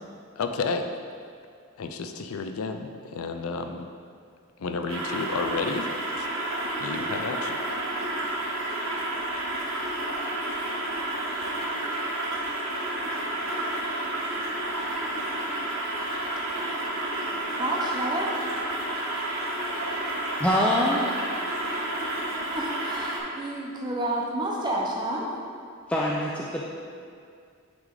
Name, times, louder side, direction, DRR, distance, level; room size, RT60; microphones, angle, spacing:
voice 1, 0.4-0.9 1.8-3.9 4.6-5.9 6.2-6.3 6.8-7.6, left 4 dB, 90° left, 6 dB, 0.5 m, -31 dB
sound 1, 4.9-23.2, right 1 dB, 90° right, 1.1 m, -30 dB
voice 2, 17.5-18.4 22.5-25.3, right 1 dB, 20° right, -3 dB, 0.8 m, -30 dB
voice 3, 20.4-21.1 25.9-26.6, equal, 5° left, -5 dB, 0.3 m, -24 dB
9.3 x 3.3 x 3.8 m, 2.2 s
head